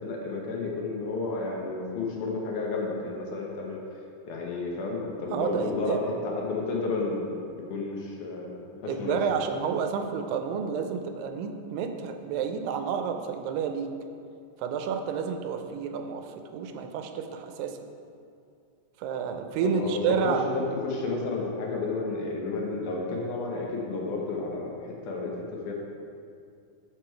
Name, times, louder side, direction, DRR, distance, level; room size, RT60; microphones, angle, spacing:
voice 1, 0.0-3.8 4.3-9.5 19.6-25.7, left 3 dB, 70° left, -2 dB, 2.3 m, -32 dB
voice 2, 5.3-6.0 8.9-13.9 14.6-17.8 19.0-20.4, right 7 dB, 90° right, 6 dB, 2.3 m, -30 dB
6.7 x 6.3 x 4.5 m, 2.4 s
omnidirectional pair, 3.9 m